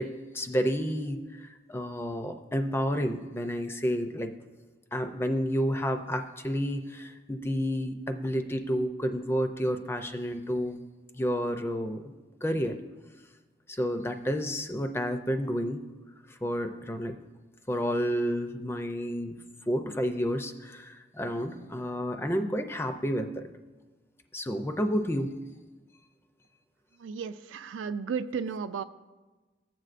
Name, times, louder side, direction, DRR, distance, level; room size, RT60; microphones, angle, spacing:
voice 1, 0.0-4.3 4.9-10.8 11.1-12.1 12.4-12.8 13.7-15.8 16.3-17.2 17.7-19.4 19.7-23.5 24.3-25.3, equal, 10° left, 6 dB, 0.4 m, -30 dB
voice 2, 27.0-28.8, right 6 dB, 80° right, 12 dB, 0.3 m, -34 dB
14.5 x 7.7 x 2.5 m, 1.2 s
head